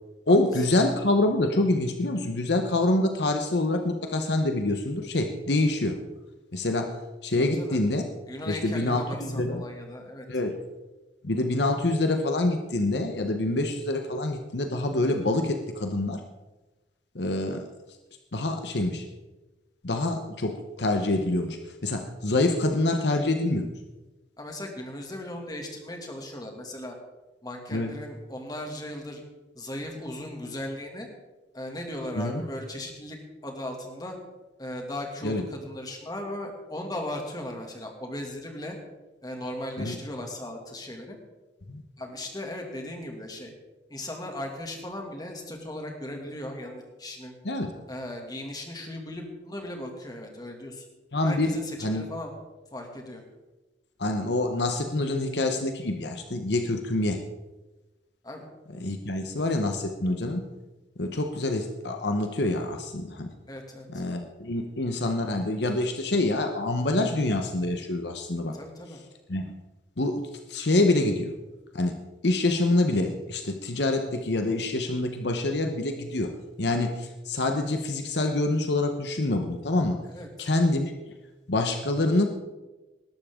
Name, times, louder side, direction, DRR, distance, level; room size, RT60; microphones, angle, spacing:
voice 1, 0.3-6.0 6.5-6.9 7.2-8.0 8.5-9.6 10.3-10.5 11.2-16.2 17.1-17.7 18.3-19.0 19.8-23.7 27.7-27.9 32.2-32.4 35.2-35.4 39.8-39.9 41.7-41.8 47.4-47.7 51.1-51.6 51.8-52.1 54.0-57.2 58.7-60.4 61.0-63.3 63.9-68.6 69.3-69.4 70.0-70.2 70.5-71.3 71.7-72.0 72.2-76.3 76.6-80.0 80.4-80.9 81.5-82.2, left 2 dB, 65° left, 5 dB, 1.1 m, -26 dB
voice 2, 7.4-7.8 8.3-10.3 24.4-27.0 27.4-29.2 29.5-31.1 31.5-33.2 33.4-34.2 34.6-38.8 39.2-41.2 42.0-43.5 43.9-47.3 47.9-50.8 51.2-52.3 52.7-53.2 58.2-58.5 63.5-63.9 68.5-69.0 80.1-80.5, left 1 dB, 20° left, 2 dB, 2.3 m, -37 dB
19.5 x 12.0 x 3.8 m, 1.1 s
head